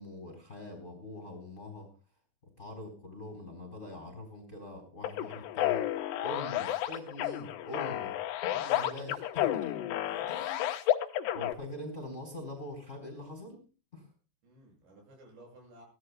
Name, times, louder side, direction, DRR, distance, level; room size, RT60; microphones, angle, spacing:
voice 1, 0.0-1.9 2.6-5.8 6.2-8.1 8.6-9.7 10.3-10.6 11.3-13.6 13.9-14.1, left 1 dB, 15° left, 3 dB, 3.8 m, -43 dB
sound 1, 5.0-11.5, left 13 dB, 80° left, 3.0 m, -31 dB
voice 2, 7.7-8.0 8.4-9.2 10.0-10.4 14.4-15.8, right 1 dB, 75° right, 1 dB, 9.5 m, -55 dB
23.0 x 17.0 x 2.3 m, 0.36 s
omnidirectional pair, 5.1 m